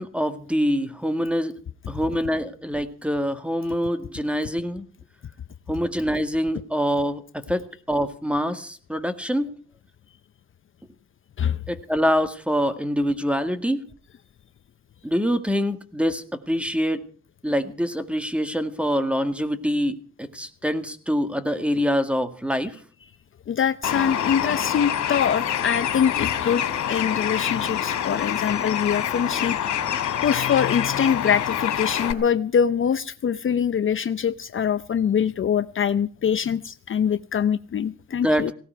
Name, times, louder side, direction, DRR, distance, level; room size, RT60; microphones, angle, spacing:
voice 1, 0.0-1.5 1.9-4.9 5.7-9.5 11.7-13.8 15.0-17.0 17.4-22.8 38.1-38.5, equal, 5° right, 9 dB, 1.9 m, -25 dB
voice 2, 23.5-29.7 30.0-38.5, left 8 dB, 40° left, 12 dB, 0.7 m, -24 dB
Bird, 23.8-32.1, left 9 dB, 65° left, 2.9 m, -26 dB
18.0 x 17.0 x 4.7 m, 0.43 s
cardioid pair, 90°, 30 cm